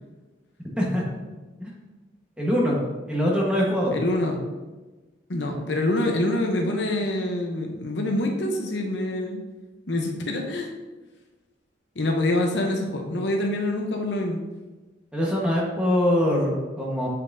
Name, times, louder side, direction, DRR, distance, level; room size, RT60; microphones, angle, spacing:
voice 1, 2.4-2.8 3.1-4.0 15.1-17.1, equal, 5° right, -4 dB, 1.3 m, -23 dB
voice 2, 3.9-4.4 5.3-9.4 9.9-10.7 12.0-14.4, left 1 dB, 70° left, 2 dB, 0.9 m, -26 dB
7.6 x 5.6 x 2.7 m, 1.2 s
head